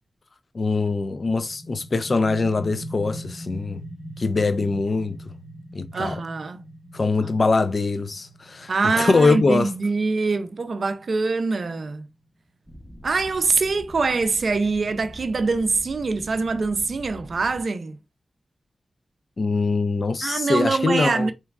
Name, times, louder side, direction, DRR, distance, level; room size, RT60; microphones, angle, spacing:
voice 1, 0.5-3.8 4.2-5.2 5.7-6.2 6.9-9.7 19.4-21.3, left 3 dB, 55° left, 0.3 m, -23 dB
sound 1, 0.8-12.2, right 1 dB, 40° left, 1.1 m, -42 dB
voice 2, 5.9-6.6 7.2-7.3 8.7-12.1 13.0-18.0 20.2-21.3, right 4 dB, 65° right, 0.4 m, -24 dB
sound 2, 12.7-17.6, equal, 5° left, 0.7 m, -44 dB
2.9 x 2.4 x 2.2 m
cardioid pair, 50°, 0 cm